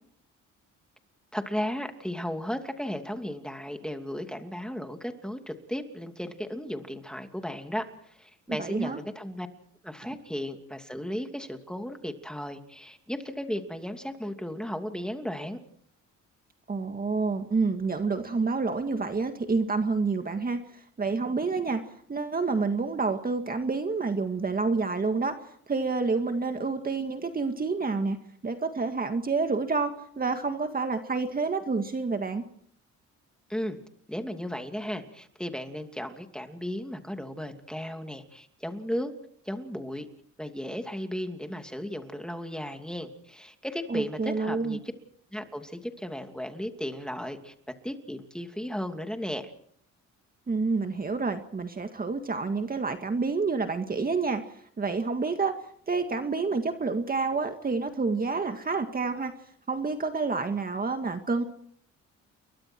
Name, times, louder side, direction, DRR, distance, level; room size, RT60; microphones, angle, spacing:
voice 1, 1.3-9.5 9.8-15.6 33.5-33.8 34.1-39.1 39.4-40.1 40.4-44.9 45.3-49.5, equal, 5° left, 6 dB, 2.8 m, -35 dB
voice 2, 8.5-9.0 16.7-21.8 22.1-28.2 28.4-32.4 43.9-44.8 50.5-55.5 55.9-59.3 59.7-61.4, right 4 dB, 30° right, 6 dB, 1.9 m, -28 dB
30.0 x 22.5 x 4.6 m, 0.63 s
cardioid pair, 90°, 30 cm